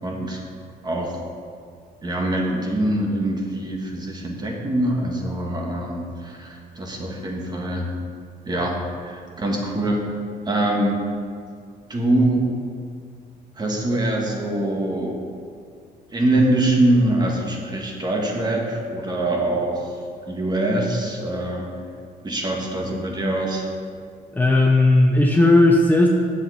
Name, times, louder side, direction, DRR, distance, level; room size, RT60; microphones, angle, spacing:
voice 1, 0.0-0.4 0.8-1.2 2.0-7.9 8.5-10.0 10.5-11.0 11.9-12.5 13.6-15.3 16.1-20.0 20.3-21.7 22.2-23.7, right 1 dB, 25° right, 0 dB, 1.7 m, -23 dB
voice 2, 24.3-26.1, left 2 dB, 10° left, 0 dB, 0.7 m, -15 dB
7.8 x 7.2 x 5.7 m, 2.2 s
cardioid pair, 110°, 17 cm